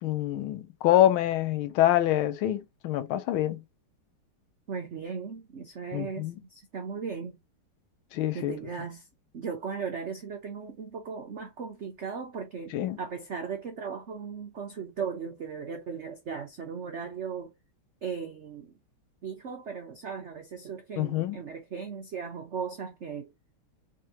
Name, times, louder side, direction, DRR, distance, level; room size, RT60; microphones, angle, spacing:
voice 1, 0.0-3.6 5.9-6.4 8.1-8.5 12.7-13.0 21.0-21.4, left 13 dB, 80° left, 1.5 m, -26 dB
voice 2, 4.7-7.4 8.3-9.1 9.3-17.5 18.0-18.8 19.2-23.3, right 6 dB, 75° right, 0.6 m, -37 dB
3.7 x 3.4 x 2.8 m
omnidirectional pair, 2.3 m